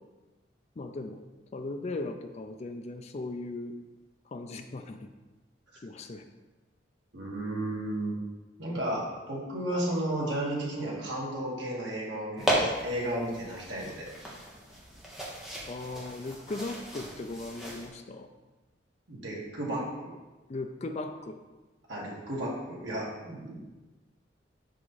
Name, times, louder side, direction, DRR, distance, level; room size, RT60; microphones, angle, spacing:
voice 1, 0.8-1.2 1.5-3.7 4.3-5.1 5.8-6.2 15.7-18.3 20.5-21.4, left 2 dB, 35° left, 6 dB, 0.4 m, -38 dB
voice 2, 7.1-8.2 8.6-14.1 19.1-20.1 21.9-23.5, right 1 dB, 80° right, -4 dB, 2.0 m, -33 dB
sound 1, 12.4-17.9, right 1 dB, ahead, 1.1 m, -35 dB
5.8 x 4.8 x 4.1 m, 1.2 s
head